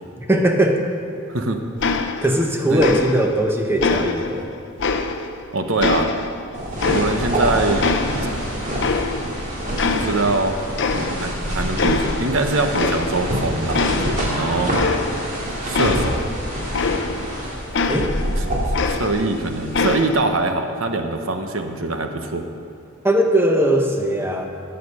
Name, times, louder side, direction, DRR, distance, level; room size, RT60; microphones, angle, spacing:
voice 1, 0.3-0.9 2.2-4.5 17.9-18.1 23.0-24.5, right 1 dB, 10° right, 3 dB, 0.9 m, -19 dB
sound 1, 1.8-2.5 2.8-3.4 3.8-5.4 5.8-7.5 7.8-9.4 9.8-10.5 10.8-11.4 11.8-12.3 12.7-13.4 13.7-17.4 17.7-19.4 19.7-20.4, left 4 dB, 55° left, 0.6 m, -24 dB
voice 2, 5.5-6.1 6.9-7.9 9.9-10.7 11.1-14.7 15.6-16.2 18.4-18.5 18.9-22.4, right 2 dB, 75° right, 6 dB, 1.0 m, -23 dB
sound 2, 6.5-19.9, equal, 35° right, 2.4 m, -26 dB
17.5 x 6.8 x 5.5 m, 2.7 s
head